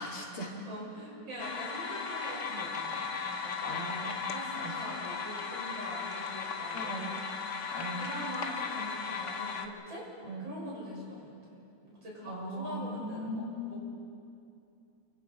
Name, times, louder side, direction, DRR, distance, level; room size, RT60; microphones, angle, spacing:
voice 1, 0.0-0.5 3.6-4.2 4.5-4.9 6.7-7.1 7.7-8.1 10.2-10.4 12.3-13.8, equal, 80° left, -2 dB, 4.0 m, -39 dB
voice 2, 0.7-7.2 8.0-10.0 10.4-13.8, equal, 60° right, -5 dB, 7.5 m, -43 dB
sound 1, 1.4-9.7, left 5 dB, 45° left, 1.2 m, -36 dB
29.0 x 24.0 x 4.7 m, 2.6 s
omnidirectional pair, 2.4 m